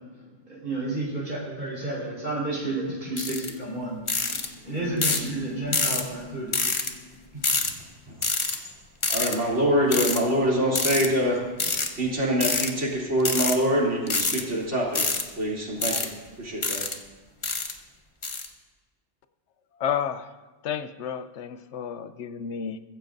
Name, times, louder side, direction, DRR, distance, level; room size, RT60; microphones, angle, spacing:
voice 1, 0.4-4.0 4.2-7.6, right 2 dB, 40° right, -5 dB, 4.7 m, -31 dB
sound 1, 3.2-3.5 4.1-4.5 5.0-5.3 5.7-6.0 6.5-6.9 7.4-7.7 8.2-8.6 9.0-9.4 9.9-10.2 10.7-11.1 11.6-11.9 12.4-12.7 13.2-13.6 14.1-14.4 14.9-15.2 15.8-16.1 16.6-17.0 17.4-17.7 18.2-18.5, left 3 dB, 30° left, 0.9 m, -26 dB
voice 2, 9.1-11.7 12.0-15.0 15.4-16.1 16.4-16.8, equal, 75° right, -4 dB, 3.6 m, -25 dB
voice 3, 19.8-20.3 20.6-22.8, left 8 dB, 75° left, 11 dB, 1.0 m, -31 dB
22.5 x 15.0 x 2.6 m, 1.3 s
omnidirectional pair, 1.2 m